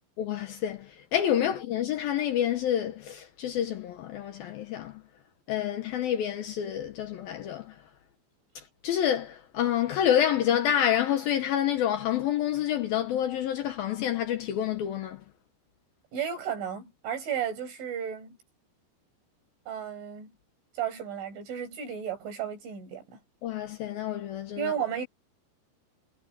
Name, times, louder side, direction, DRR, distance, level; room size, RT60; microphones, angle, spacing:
voice 1, 0.2-5.0 5.5-7.7 8.6-15.2 23.4-24.7, left 10 dB, 70° left, 2.4 m, -28 dB
voice 2, 16.1-18.4 19.7-20.3 20.8-23.2 24.6-25.1, right 8 dB, 85° right, 9.6 m, -33 dB
omnidirectional pair, 5.4 m